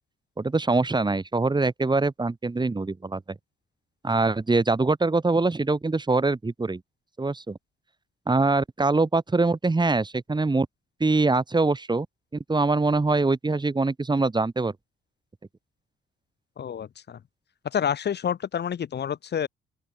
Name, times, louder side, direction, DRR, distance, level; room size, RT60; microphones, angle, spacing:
voice 1, 0.4-3.2 4.0-6.8 7.2-7.6 8.3-10.7 11.0-12.1 12.5-14.7, right 3 dB, 20° right, 7.8 m, -23 dB
voice 2, 16.6-17.2 17.7-19.5, left 8 dB, 55° left, 6.6 m, -28 dB
open air
cardioid pair, 90°, 20 cm